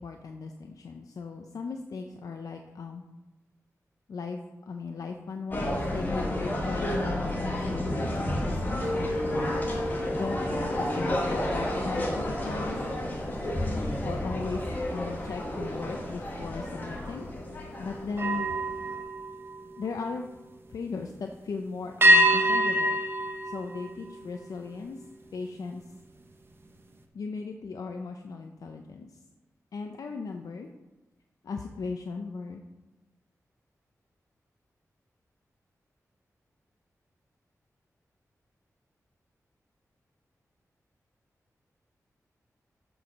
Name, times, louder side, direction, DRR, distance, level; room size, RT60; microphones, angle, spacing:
voice 1, 0.0-3.0 4.1-9.6 10.1-12.8 14.0-14.6 14.9-18.5 19.8-20.2 20.7-23.0 23.4-25.0 25.3-25.8 27.1-29.2 29.7-30.7 31.4-32.6, left 4 dB, 85° left, 4 dB, 0.6 m, -37 dB
sound 1, 5.5-19.0, left 1 dB, 30° left, 1.8 m, -31 dB
sound 2, 8.8-14.4 14.8-15.1 18.1-20.3 22.0-24.6, equal, 40° right, 1.0 m, -28 dB
13.5 x 4.8 x 5.3 m, 1.1 s
wide cardioid pair, 150°, 6 cm